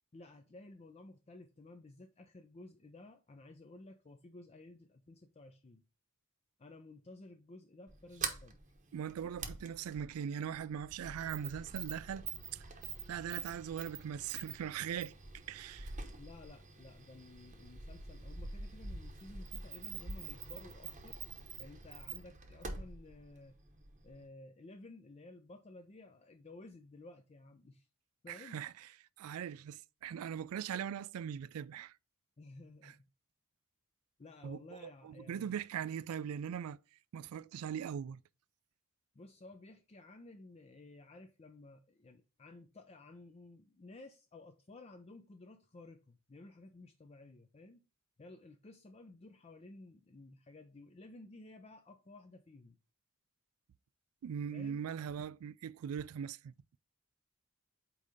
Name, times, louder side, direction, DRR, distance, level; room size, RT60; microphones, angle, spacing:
voice 1, 0.1-5.8 6.6-8.6 16.2-21.2 21.6-23.6 24.0-27.9 28.2-28.6 32.4-33.1 34.2-35.6 39.1-47.8 48.2-52.8 54.5-54.9, left 2 dB, 30° left, 0.4 m, -54 dB
Sliding door, 7.9-24.2, right 4 dB, 35° right, 0.8 m, -46 dB
voice 2, 8.9-12.6 13.1-15.2 15.5-15.9 28.3-28.9 29.2-31.9 32.8-32.9 34.4-36.8 37.1-38.2 54.2-56.5, right 8 dB, 80° right, 0.3 m, -40 dB
8.3 x 2.8 x 5.0 m
head